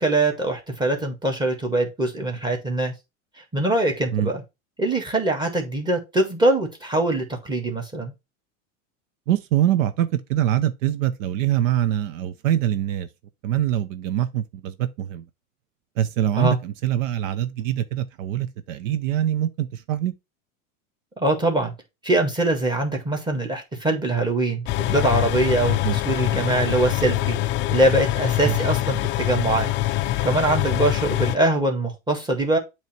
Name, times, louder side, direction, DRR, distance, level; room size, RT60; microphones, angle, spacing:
voice 1, 0.0-2.9 3.5-4.4 4.8-8.1 16.4-16.6 21.2-21.7 22.0-25.8 26.1-27.4 27.7-29.7 30.2-32.6, right 2 dB, 10° right, 1.9 m, -23 dB
voice 2, 9.3-13.1 13.4-15.2 16.0-20.1 25.8-26.0 28.4-28.6, right 11 dB, 70° right, 0.8 m, -24 dB
sound 1, 24.7-31.4, left 15 dB, 30° left, 0.4 m, -24 dB
8.2 x 3.2 x 4.4 m
supercardioid pair, 125°, 39 cm